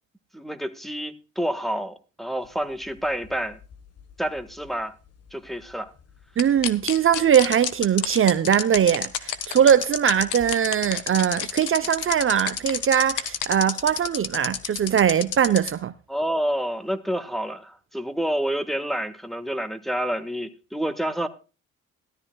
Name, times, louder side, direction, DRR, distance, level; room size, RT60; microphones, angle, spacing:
voice 1, 0.3-3.6 4.2-4.9 5.3-5.9 16.1-21.3, right 1 dB, ahead, 1.4 m, -28 dB
sound 1, 2.8-4.4 4.7-4.8 6.6-6.7 7.3-15.7, left 8 dB, 55° left, 1.4 m, -30 dB
sound 2, 6.4-7.7 8.0-9.7 10.1-13.5, left 11 dB, 90° left, 1.2 m, -30 dB
voice 2, 6.4-15.9, right 9 dB, 45° right, 0.7 m, -21 dB
17.0 x 13.0 x 2.3 m
cardioid pair, 90°, 30 cm